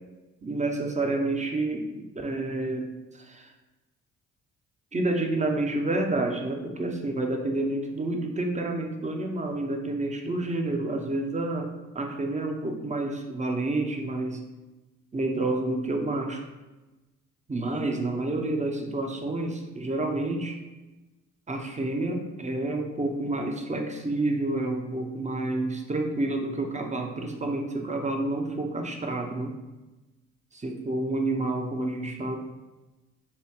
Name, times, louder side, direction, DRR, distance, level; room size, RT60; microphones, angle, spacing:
voice 1, 0.4-2.9 3.1-3.5 4.9-14.4 15.1-16.4 17.5-20.6 21.5-29.6 30.5-32.4, right 2 dB, 20° right, 3 dB, 0.8 m, -29 dB
5.6 x 2.2 x 3.1 m, 1.1 s
hypercardioid pair, 45°, 35 cm